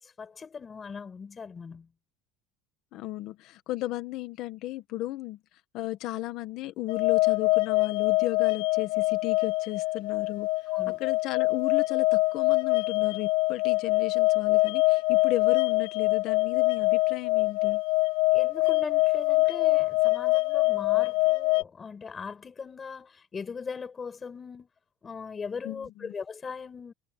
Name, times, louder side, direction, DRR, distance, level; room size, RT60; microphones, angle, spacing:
voice 1, 0.0-1.9 10.7-11.0 18.3-24.7 25.0-26.9, left 5 dB, 15° left, 6.3 m, -39 dB
voice 2, 2.9-5.4 5.7-10.5 11.0-17.8 25.6-26.1, left 16 dB, 45° left, 1.3 m, -34 dB
sound 1, 6.9-21.6, left 23 dB, 90° left, 1.8 m, -24 dB
cardioid pair, 180°, 0 cm